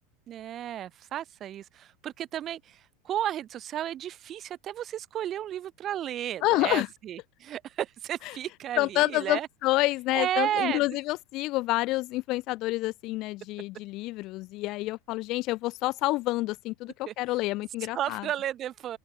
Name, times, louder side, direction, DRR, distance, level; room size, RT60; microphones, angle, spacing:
voice 1, 0.3-9.5 10.1-10.9 17.1-17.2 17.9-19.0, right 11 dB, 25° right, 7.0 m, -33 dB
voice 2, 6.4-6.9 8.3-8.4 8.8-18.3, left 19 dB, 40° left, 1.8 m, -28 dB
open air
supercardioid pair, 165°, 0 cm